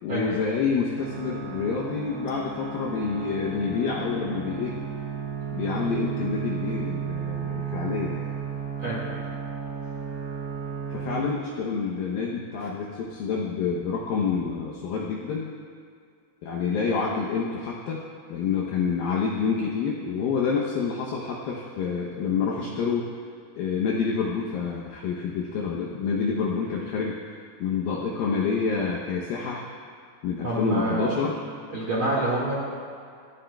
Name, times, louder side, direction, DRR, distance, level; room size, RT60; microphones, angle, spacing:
voice 1, 0.0-4.8 5.5-8.3 10.9-15.5 16.4-18.0 18.3-23.1 23.6-27.2 27.6-29.7 30.2-31.4, left 5 dB, 85° left, -3 dB, 2.0 m, -28 dB
sound 1, 1.0-11.4, right 6 dB, 70° right, 3.1 m, -33 dB
voice 2, 8.8-9.1 30.4-31.1 31.7-32.5, right 2 dB, 45° right, -6 dB, 1.7 m, -27 dB
24.0 x 11.5 x 2.3 m, 2.2 s
omnidirectional pair, 5.4 m